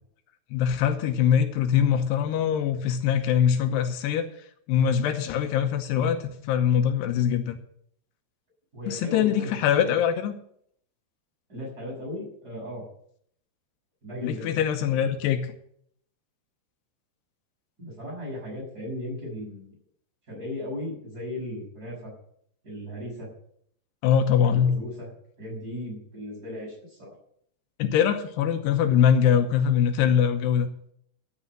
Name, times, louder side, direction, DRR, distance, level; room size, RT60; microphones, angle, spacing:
voice 1, 0.5-4.3 4.7-7.6 8.9-10.3 14.2-15.5 24.0-24.8 27.8-30.7, left 8 dB, 80° left, 7 dB, 3.0 m, -23 dB
voice 2, 8.7-9.5 9.8-10.0 11.5-12.8 14.0-14.6 17.8-19.7 20.3-22.1 22.6-23.3 24.4-25.1 25.4-27.1, left 1 dB, 20° right, -3 dB, 6.7 m, -36 dB
14.0 x 6.9 x 7.6 m, 0.67 s
omnidirectional pair, 4.8 m